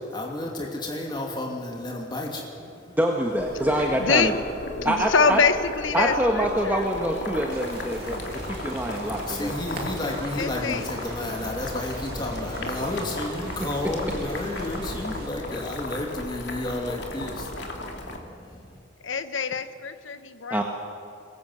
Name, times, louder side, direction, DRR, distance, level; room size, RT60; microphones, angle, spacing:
voice 1, 0.1-3.0 9.0-18.8, left 1 dB, 25° left, -1 dB, 2.8 m, -32 dB
voice 2, 3.0-4.3 4.8-5.4 5.9-9.5 20.5-20.6, right 1 dB, 10° right, 0 dB, 1.6 m, -25 dB
Boiling, 3.4-18.2, left 1 dB, 60° left, 2.8 m, -35 dB
voice 3, 4.0-4.4 4.7-6.9 10.3-10.9 19.0-20.6, left 5 dB, 80° left, 11 dB, 1.1 m, -25 dB
sound 1, 7.5-15.3, right 1 dB, 50° right, 2.7 m, -40 dB
23.0 x 20.5 x 8.0 m, 2.4 s
head